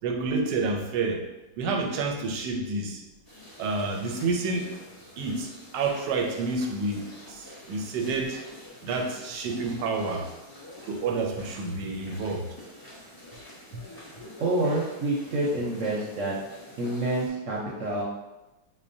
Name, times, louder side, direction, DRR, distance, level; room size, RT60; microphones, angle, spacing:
voice 1, 0.0-1.2 1.6-3.0 3.6-4.7 5.2-8.4 8.8-10.3 10.8-12.5 13.7-13.9, right 3 dB, 90° right, 3 dB, 1.2 m, -29 dB
sound 1, 3.2-17.3, left 1 dB, 25° left, 0.5 m, -47 dB
voice 2, 14.4-16.4 16.8-18.0, right 2 dB, 65° right, -4 dB, 0.8 m, -27 dB
5.8 x 2.1 x 2.6 m, 1.0 s
omnidirectional pair, 1.8 m